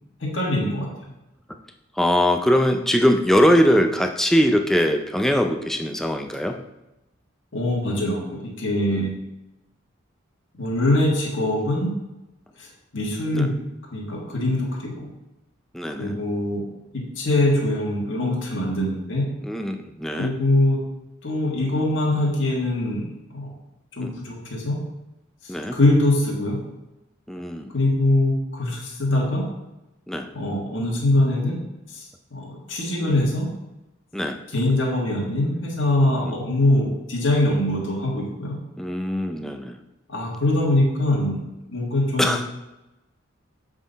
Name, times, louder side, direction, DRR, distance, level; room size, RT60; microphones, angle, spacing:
voice 1, 0.2-0.9 7.5-9.1 10.6-11.9 12.6-12.7 12.9-13.6 13.9-15.1 16.0-16.6 17.1-19.3 20.2-20.8 21.2-23.5 24.0-24.8 25.4-26.6 27.7-29.4 30.3-31.6 31.9-32.0 32.3-33.5 34.5-38.5 40.1-41.4 41.7-42.3, left 1 dB, 60° left, -3 dB, 1.7 m, -23 dB
voice 2, 2.0-6.6 8.9-9.1 13.3-13.5 15.7-16.2 19.4-20.3 24.0-24.2 25.5-25.8 27.3-27.7 30.1-30.3 33.0-33.2 34.1-34.4 36.2-36.4 38.8-39.8 42.2-42.4, equal, ahead, 4 dB, 0.4 m, -21 dB
7.3 x 3.9 x 4.0 m, 0.97 s
head